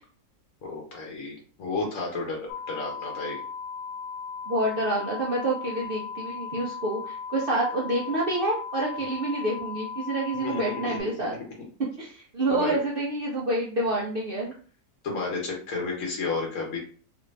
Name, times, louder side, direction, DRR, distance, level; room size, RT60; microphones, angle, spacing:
voice 1, 0.6-2.4 2.7-3.4 10.4-11.0 12.5-12.8 15.0-16.8, left 3 dB, 60° left, -1 dB, 1.1 m, -32 dB
sound 1, 2.5-11.0, left 5 dB, 85° left, 1.2 m, -37 dB
voice 2, 4.5-11.3 12.0-14.5, right 1 dB, 70° right, -4 dB, 0.5 m, -28 dB
3.1 x 2.5 x 3.1 m, 0.43 s
omnidirectional pair, 1.7 m